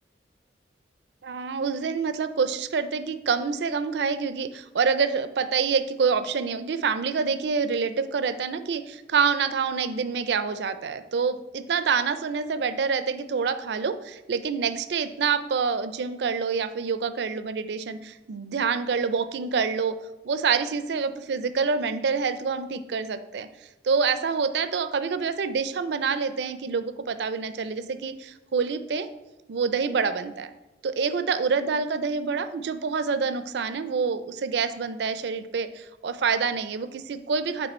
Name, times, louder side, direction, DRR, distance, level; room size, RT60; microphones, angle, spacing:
voice 1, 1.2-20.0 20.2-23.5 23.8-29.1 29.5-30.5 30.8-37.7, right 5 dB, 70° right, 12 dB, 0.4 m, -27 dB
9.0 x 3.1 x 4.2 m, 1.0 s
head